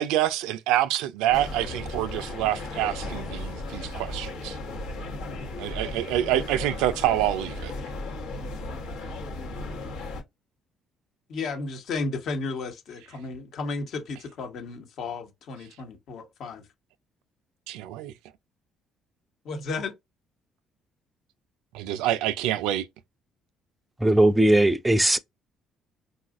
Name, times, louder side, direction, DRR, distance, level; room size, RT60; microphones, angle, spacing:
voice 1, 0.0-4.6 5.6-7.7 18.0-18.1 21.7-22.9, right 13 dB, 80° right, 0.3 m, -26 dB
sound 1, 1.3-10.2, left 2 dB, 90° left, 1.1 m, -35 dB
voice 2, 11.3-16.6 19.4-20.0, left 3 dB, 65° left, 1.1 m, -33 dB
voice 3, 24.0-25.2, right 1 dB, 10° right, 0.4 m, -19 dB
3.8 x 2.4 x 2.4 m
supercardioid pair, 65°, 0 cm